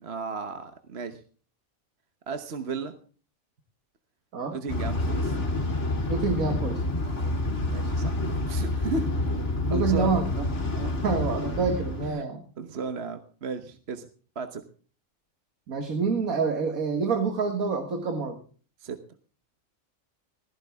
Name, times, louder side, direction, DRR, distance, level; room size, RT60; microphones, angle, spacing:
voice 1, 0.0-1.2 2.3-2.9 4.5-5.3 7.7-9.4 9.7-10.1 12.0-12.2 12.6-14.1 14.3-14.6 18.8-19.0, right 4 dB, 50° right, 8 dB, 1.3 m, -35 dB
sound 1, 4.7-12.1, left 2 dB, 55° left, 3.0 m, -28 dB
voice 2, 6.1-6.8 9.7-10.4 10.8-12.4 15.7-18.4, right 5 dB, 80° right, 6 dB, 2.0 m, -27 dB
16.0 x 14.5 x 3.6 m, 0.40 s
omnidirectional pair, 1.5 m